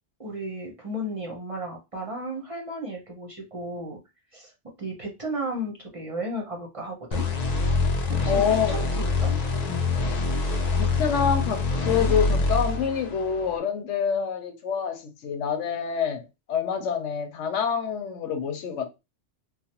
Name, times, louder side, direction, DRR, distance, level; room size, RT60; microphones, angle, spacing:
voice 1, 0.2-4.0 4.3-4.5 4.8-7.3 8.2-9.3 9.7-9.8, right 1 dB, 35° right, 0.7 m, -34 dB
sound 1, 7.1-13.6, left 3 dB, 50° left, 0.5 m, -25 dB
voice 2, 8.3-8.8 10.8-18.9, left 7 dB, 85° left, 1.0 m, -27 dB
3.2 x 2.0 x 2.8 m
omnidirectional pair, 1.2 m